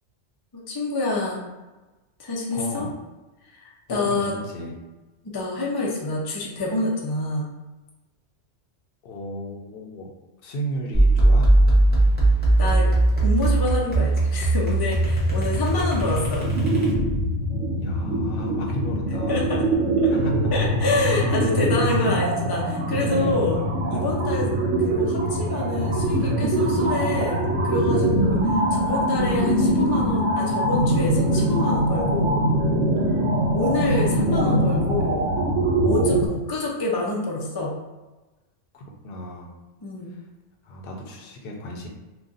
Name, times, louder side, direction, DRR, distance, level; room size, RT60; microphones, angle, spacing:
voice 1, 0.5-1.4 2.2-2.9 3.4-4.3 5.2-7.5 12.6-12.9 13.2-16.5 19.3-19.6 20.0-20.1 20.5-23.6 23.9-24.5 24.8-32.5 33.5-35.3 35.8-37.7 39.8-40.2, left 2 dB, 40° left, -3 dB, 0.3 m, -27 dB
voice 2, 2.5-2.9 3.9-4.7 9.0-10.1 10.4-11.6 17.8-19.6 20.1-20.5 20.8-21.0 38.7-39.5 40.1-40.2 40.6-41.9, right 1 dB, 55° left, 0 dB, 0.8 m, -34 dB
sound 1, 10.9-17.3, right 2 dB, 10° left, 0.8 m, -19 dB
sound 2, 16.4-36.3, right 1 dB, 80° right, 1.0 m, -23 dB
2.5 x 2.3 x 3.8 m, 1.1 s
omnidirectional pair, 1.2 m